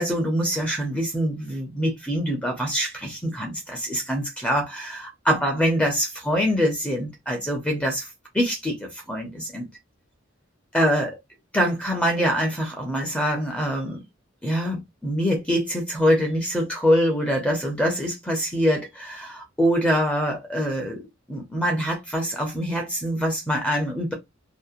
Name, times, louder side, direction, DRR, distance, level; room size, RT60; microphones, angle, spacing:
voice 1, 0.0-8.1 8.3-9.7 10.7-11.2 11.5-14.0 14.4-21.0 21.3-24.1, equal, 5° left, 0.6 m, -24 dB
2.7 x 2.1 x 2.4 m
head